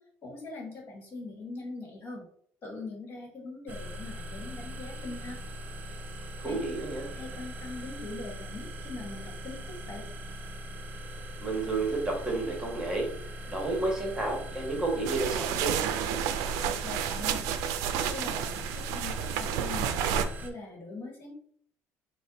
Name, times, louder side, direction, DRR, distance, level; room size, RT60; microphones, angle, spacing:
voice 1, 0.2-2.3 2.6-5.4 6.4-6.6 7.1-10.1 16.7-17.5 17.9-21.3, left 3 dB, 40° left, 1 dB, 1.4 m, -42 dB
sound 1, 3.7-20.5, equal, 30° right, 0.6 m, -41 dB
voice 2, 6.4-7.1 11.4-13.1 13.5-15.8, right 2 dB, 15° right, -1 dB, 1.4 m, -31 dB
sound 2, 15.0-20.3, right 9 dB, 85° right, 0.4 m, -31 dB
5.0 x 2.3 x 4.0 m, 0.63 s
cardioid pair, 125°, 6 cm